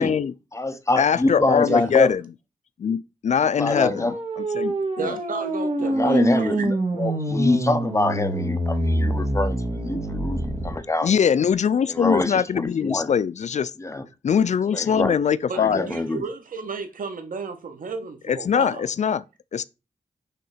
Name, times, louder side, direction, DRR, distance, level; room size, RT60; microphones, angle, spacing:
voice 1, 0.0-0.3 1.0-2.2 2.8-4.1 4.4-5.2 11.0-13.7 14.2-15.9 18.3-19.2 19.5-19.6, left 7 dB, 55° left, 0.4 m, -22 dB
voice 2, 0.5-2.1 3.6-4.1 5.8-11.1 11.9-13.1 13.8-14.0 14.7-15.1 15.6-16.2, left 2 dB, 20° left, 0.8 m, -25 dB
sound 1, 3.6-10.7, right 1 dB, 45° right, 2.0 m, -25 dB
voice 3, 5.0-6.7 15.5-18.9, right 4 dB, 80° right, 1.3 m, -33 dB
5.7 x 3.5 x 5.7 m
wide cardioid pair, 80°, 14 cm